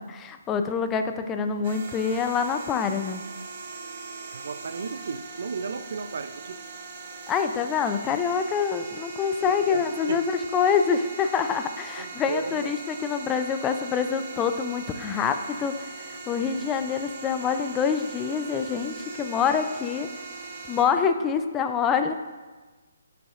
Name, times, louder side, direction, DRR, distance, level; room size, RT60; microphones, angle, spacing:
voice 1, 0.0-3.2 7.3-20.1 20.7-22.1, left 6 dB, 15° left, 7 dB, 0.4 m, -26 dB
sound 1, 1.6-20.8, right 4 dB, 45° right, 1.0 m, -40 dB
voice 2, 4.3-6.6 9.5-10.2 12.0-12.7, right 5 dB, 65° right, 13 dB, 0.4 m, -34 dB
11.5 x 5.8 x 2.4 m, 1.3 s
hypercardioid pair, 145°, 0 cm